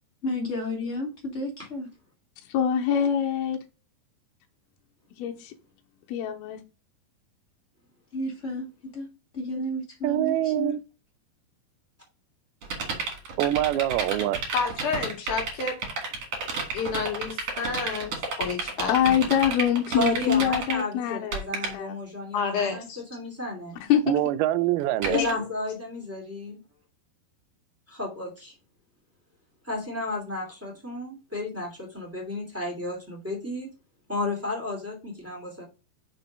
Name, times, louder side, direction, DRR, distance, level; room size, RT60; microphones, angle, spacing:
voice 1, 0.2-1.9 8.1-8.7 8.9-9.1 9.3-10.7, left 1 dB, 25° left, 1.9 m, -31 dB
voice 2, 2.5-3.6 5.2-5.5 6.1-6.6 18.9-22.0 23.8-24.1, left 9 dB, 85° left, 2.7 m, -24 dB
voice 3, 10.0-10.8 13.4-14.4 24.1-25.2, right 13 dB, 80° right, 2.4 m, -24 dB
sound 1, 12.6-20.8 21.1-21.7 25.0-25.3, right 4 dB, 45° right, 2.9 m, -30 dB
voice 4, 14.5-15.8 16.7-19.1 22.3-23.0 25.1-25.3, left 5 dB, 60° left, 2.6 m, -29 dB
voice 5, 19.9-22.8 23.1-23.8 25.1-26.6 27.9-28.5 29.6-33.7 34.1-35.6, left 2 dB, 5° right, 1.5 m, -32 dB
6.0 x 4.2 x 5.3 m
omnidirectional pair, 4.7 m